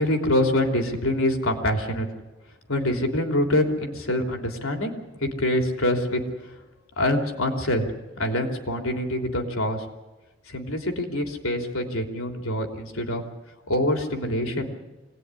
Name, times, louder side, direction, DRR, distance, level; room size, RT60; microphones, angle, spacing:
voice 1, 0.0-2.1 2.7-4.9 5.2-6.2 7.0-7.8 8.2-9.8 10.5-13.2 13.7-14.7, left 1 dB, 80° left, 4 dB, 3.3 m, -25 dB
25.0 x 18.5 x 9.8 m, 1.1 s
head